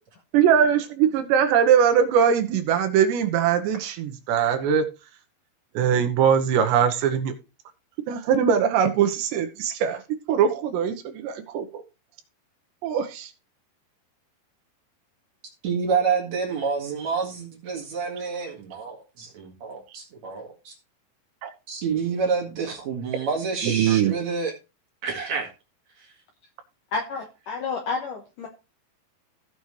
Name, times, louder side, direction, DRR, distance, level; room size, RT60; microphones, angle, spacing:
voice 1, 0.3-4.9 5.7-7.3 8.1-11.8 12.8-13.3 21.4-21.5 23.6-24.1, right 8 dB, 75° right, 7 dB, 3.0 m, -21 dB
voice 2, 15.6-20.7 21.7-24.5 25.0-25.5, right 5 dB, 50° right, 0 dB, 2.4 m, -28 dB
voice 3, 26.9-28.5, left 4 dB, 70° left, 3 dB, 2.1 m, -30 dB
15.0 x 7.0 x 3.2 m, 0.28 s
omnidirectional pair, 5.4 m